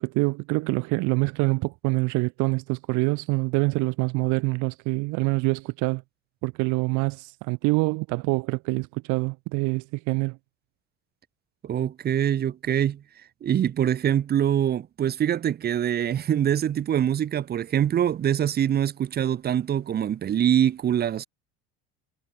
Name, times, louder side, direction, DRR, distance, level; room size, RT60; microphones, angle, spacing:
voice 1, 0.0-6.0 6.4-10.4, right 26 dB, 75° right, 0.9 m, -25 dB
voice 2, 11.6-13.0 13.4-21.3, right 10 dB, 30° right, 1.9 m, -24 dB
cardioid pair, 165°, 30 cm